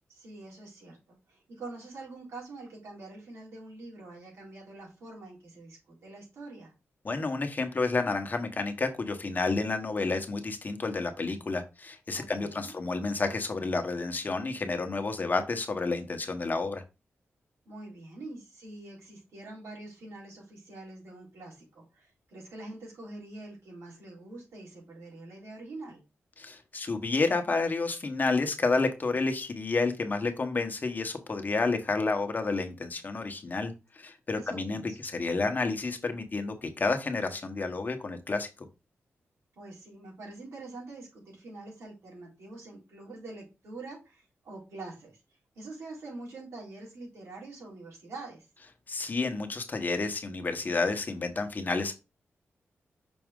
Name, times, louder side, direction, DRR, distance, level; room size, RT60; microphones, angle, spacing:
voice 1, 0.1-6.7 12.1-12.7 17.7-26.0 34.3-35.0 39.6-45.2 45.6-48.5, right 2 dB, 85° right, -3 dB, 3.7 m, -45 dB
voice 2, 7.0-16.8 26.4-38.5 48.9-51.9, left 3 dB, 40° left, 6 dB, 1.1 m, -30 dB
6.2 x 4.2 x 3.7 m, 0.28 s
cardioid pair, 85°, 5 cm